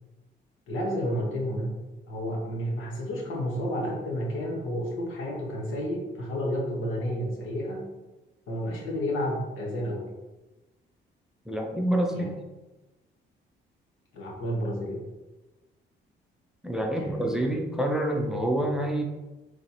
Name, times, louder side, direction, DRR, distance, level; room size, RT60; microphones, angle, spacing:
voice 1, 0.7-1.8 2.1-7.9 8.5-10.1 12.1-12.3 14.1-15.0 16.9-17.5, equal, 80° left, -2 dB, 1.1 m, -31 dB
voice 2, 11.5-12.4 16.6-19.0, right 1 dB, 5° right, 2 dB, 0.5 m, -27 dB
3.2 x 2.7 x 4.2 m, 1.1 s
cardioid pair, 90°, 20 cm